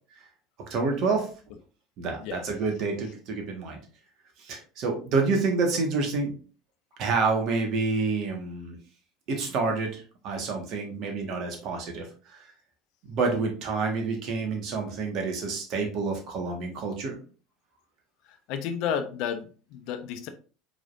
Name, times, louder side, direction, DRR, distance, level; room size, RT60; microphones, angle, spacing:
voice 1, 0.7-1.3 2.0-3.8 4.4-6.3 7.0-8.8 9.3-12.5 13.0-17.1, right 4 dB, 55° right, 3 dB, 1.6 m, -28 dB
voice 2, 18.5-20.3, left 8 dB, 65° left, 8 dB, 0.7 m, -31 dB
4.9 x 3.9 x 2.6 m, 0.37 s
hypercardioid pair, 80°, 0 cm